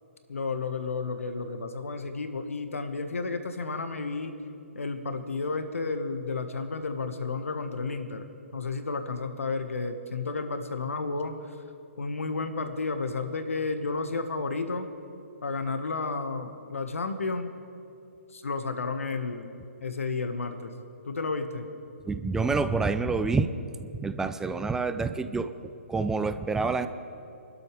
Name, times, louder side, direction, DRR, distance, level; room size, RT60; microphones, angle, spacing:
voice 1, 0.3-4.3 4.7-8.3 8.5-11.6 12.0-14.9 15.4-17.5 18.3-19.5 19.8-20.7 21.1-21.7, left 4 dB, 80° left, 7 dB, 1.4 m, -32 dB
voice 2, 22.1-23.5 23.8-25.5 25.9-26.9, right 4 dB, 5° right, 11 dB, 0.4 m, -27 dB
27.0 x 12.5 x 3.3 m, 2.7 s
figure-of-eight pair, 135°, 7 cm